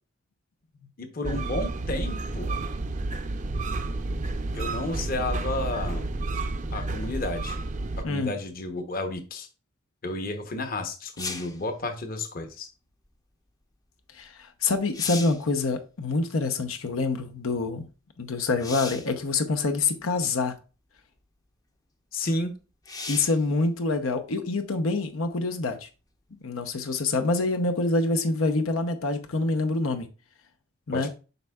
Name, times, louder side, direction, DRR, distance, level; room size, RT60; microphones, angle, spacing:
voice 1, 1.0-2.5 4.5-6.1 6.7-7.6 8.1-9.5 10.0-12.7 22.1-22.5 30.9-31.1, left 2 dB, 45° left, 0.8 m, -31 dB
sound 1, 1.2-8.0, right 2 dB, 35° right, 0.5 m, -30 dB
sound 2, 11.2-11.6 14.3-14.4 14.8-15.5 18.6-19.1 20.2-20.3 22.8-23.4 27.0-27.1, left 4 dB, 20° left, 0.5 m, -36 dB
voice 2, 14.1-17.9 18.2-20.5 23.1-25.9 26.4-30.1 30.9-31.1, left 3 dB, 90° left, 0.7 m, -26 dB
7.9 x 5.3 x 2.3 m
head